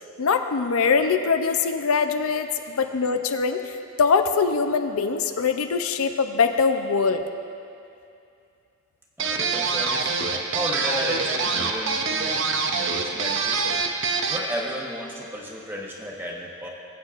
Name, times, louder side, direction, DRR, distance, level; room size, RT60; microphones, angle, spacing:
voice 1, 0.2-7.2, left 5 dB, 70° left, 7 dB, 0.5 m, -23 dB
voice 2, 9.2-10.1 10.5-12.4 12.7-13.8 14.3-16.7, equal, 10° right, -2 dB, 1.0 m, -33 dB
sound 1, 9.2-14.5, right 4 dB, 55° right, 0.6 m, -25 dB
21.0 x 8.2 x 2.5 m, 2.5 s
head